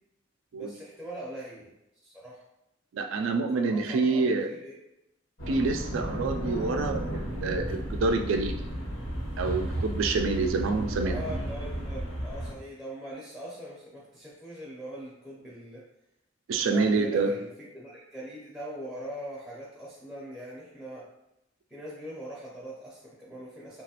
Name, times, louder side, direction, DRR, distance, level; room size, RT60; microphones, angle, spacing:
voice 1, 0.5-1.7 2.0-2.4 3.1-4.8 11.0-15.8 16.5-21.0 21.7-23.8, right 1 dB, ahead, -7 dB, 0.5 m, -41 dB
voice 2, 2.9-4.5 5.5-8.7 9.4-11.4 16.5-17.3, right 3 dB, 70° right, 5 dB, 0.3 m, -27 dB
sound 1, 5.4-12.5, equal, 70° left, 1.1 m, -33 dB
3.0 x 2.3 x 2.8 m, 0.88 s
head